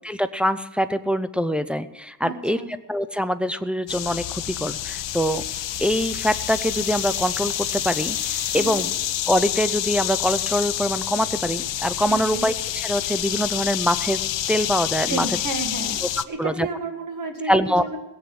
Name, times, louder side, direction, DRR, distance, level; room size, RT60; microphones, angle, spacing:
voice 1, 0.0-2.6 2.9-5.4 5.8-8.9 9.3-14.2 14.5-15.3 16.0-16.1 16.4-16.7 17.4-17.9, equal, 5° right, 10 dB, 0.4 m, -24 dB
voice 2, 2.2-2.7 8.5-8.8 12.1-12.5 15.1-16.0 16.3-17.5 17.8-18.0, right 3 dB, 45° right, 5 dB, 1.9 m, -31 dB
sound 1, 3.9-16.3, left 13 dB, 90° left, 0.6 m, -28 dB
sound 2, 4.1-9.6, right 4 dB, 85° right, 2.8 m, -42 dB
17.0 x 7.6 x 7.9 m, 1.0 s
wide cardioid pair, 160°, 43 cm